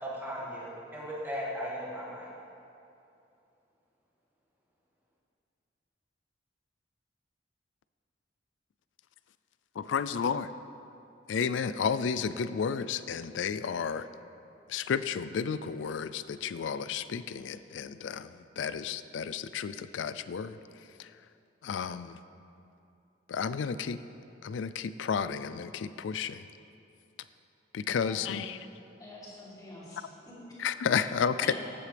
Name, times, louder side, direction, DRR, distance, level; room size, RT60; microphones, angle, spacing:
voice 1, 0.0-2.3, equal, 10° right, -6 dB, 2.0 m, -37 dB
voice 2, 9.8-10.5 11.3-14.1 14.7-20.6 21.0-21.1 21.6-22.2 23.3-24.0 24.4-26.4 27.7-28.6 30.6-31.5, left 6 dB, 85° left, 14 dB, 0.4 m, -32 dB
voice 3, 28.0-28.5 29.0-30.0 30.3-30.6 31.4-31.5, left 1 dB, 20° left, -8 dB, 2.6 m, -46 dB
14.0 x 7.9 x 3.4 m, 2.6 s
head